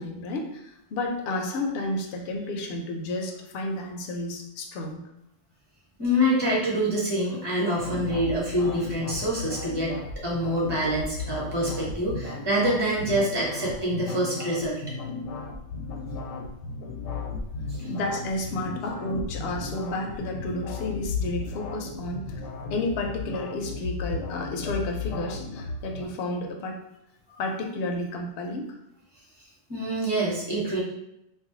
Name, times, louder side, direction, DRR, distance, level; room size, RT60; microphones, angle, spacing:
voice 1, 0.0-5.1 17.9-22.4 22.7-26.8 27.4-28.8, left 2 dB, 65° left, 2 dB, 0.7 m, -31 dB
voice 2, 6.0-14.8 17.7-17.9 29.7-30.8, equal, 20° right, -6 dB, 0.9 m, -26 dB
sound 1, 7.8-26.1, left 4 dB, 85° left, 1.0 m, -35 dB
2.4 x 2.2 x 3.8 m, 0.82 s
omnidirectional pair, 1.3 m